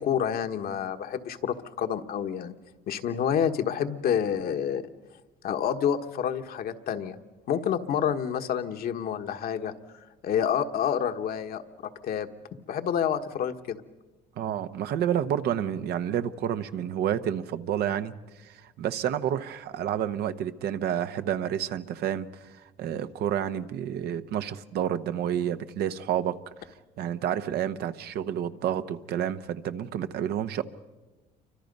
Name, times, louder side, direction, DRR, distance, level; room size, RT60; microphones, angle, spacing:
voice 1, 0.0-2.5 2.9-4.8 5.4-7.2 7.5-9.7 10.2-12.3 12.7-13.8, left 8 dB, 65° left, 6 dB, 1.4 m, -28 dB
voice 2, 14.4-18.1 18.4-26.4 27.0-30.6, right 10 dB, 70° right, 10 dB, 1.0 m, -29 dB
28.5 x 25.0 x 5.4 m, 1.2 s
cardioid pair, 110°, 17 cm